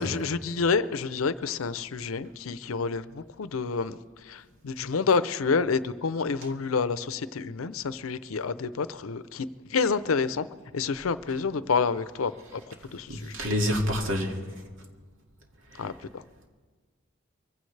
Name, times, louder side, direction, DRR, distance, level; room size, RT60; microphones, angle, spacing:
voice 1, 0.0-4.0 4.3-10.5 10.7-13.3 15.8-16.2, left 5 dB, 85° left, 0.6 m, -28 dB
voice 2, 13.1-14.4, equal, 70° right, 2.2 m, -27 dB
23.5 x 16.0 x 3.3 m
head